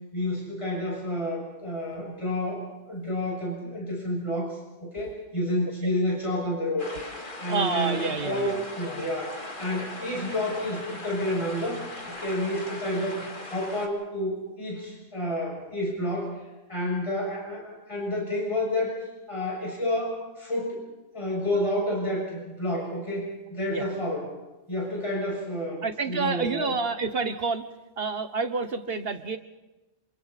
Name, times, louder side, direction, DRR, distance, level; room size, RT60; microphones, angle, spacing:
voice 1, 0.1-7.1 7.4-11.8 12.2-13.2 13.4-16.3 16.7-18.9 19.3-20.8 21.1-24.3 24.7-26.8, left 1 dB, 25° left, -2 dB, 6.6 m, -30 dB
sound 1, 6.8-13.9, left 2 dB, 40° left, 2.6 m, -39 dB
voice 2, 7.5-8.6 23.7-23.8 25.8-27.7 28.0-29.4, right 4 dB, 50° right, 9 dB, 1.4 m, -28 dB
27.5 x 27.0 x 4.2 m, 1.0 s
omnidirectional pair, 1.3 m